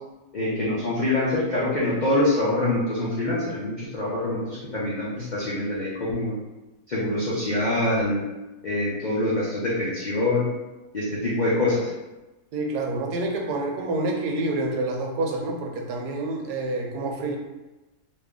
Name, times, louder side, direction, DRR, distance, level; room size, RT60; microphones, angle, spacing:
voice 1, 0.3-6.3 6.9-8.2 8.6-10.5 10.9-11.9, left 1 dB, 85° left, -7 dB, 0.4 m, -25 dB
voice 2, 12.5-17.4, right 2 dB, 80° right, 1 dB, 1.1 m, -28 dB
2.8 x 2.4 x 3.5 m, 1.1 s
omnidirectional pair, 1.7 m